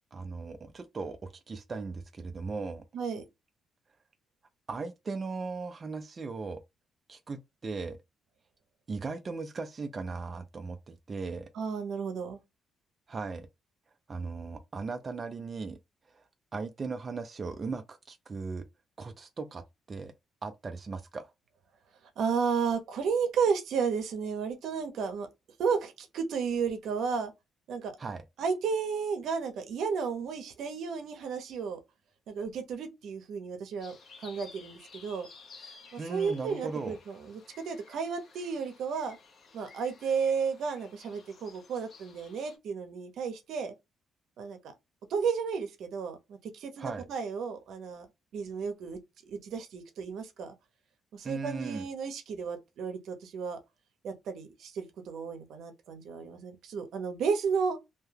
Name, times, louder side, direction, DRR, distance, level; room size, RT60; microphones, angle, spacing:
voice 1, 0.1-2.8 4.7-6.6 7.1-8.0 8.9-11.5 13.1-13.5 14.1-15.8 16.1-18.7 19.0-20.1 20.4-21.3 28.0-28.2 36.0-37.0 46.8-47.1 51.2-51.9, right 4 dB, 35° right, 0.4 m, -38 dB
voice 2, 11.5-12.4 22.2-25.3 25.6-27.3 27.7-27.9 28.4-31.8 32.3-35.3 35.6-39.2 39.5-43.7 44.4-44.6 45.1-48.1 48.3-50.5 51.1-53.6 54.0-57.9, right 6 dB, 80° right, 0.7 m, -33 dB
sound 1, 33.8-42.6, left 4 dB, 55° left, 0.9 m, -54 dB
2.7 x 2.2 x 3.2 m
cardioid pair, 110°, 0 cm